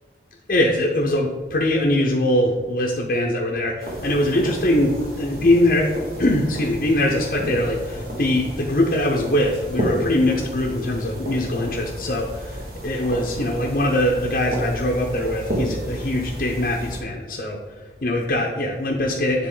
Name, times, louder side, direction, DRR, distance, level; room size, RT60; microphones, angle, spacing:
voice 1, 0.5-19.5, left 1 dB, 50° left, -2 dB, 0.7 m, -22 dB
sound 1, 3.8-17.0, equal, 60° right, 1.6 m, -32 dB
9.6 x 3.6 x 3.8 m, 1.3 s
head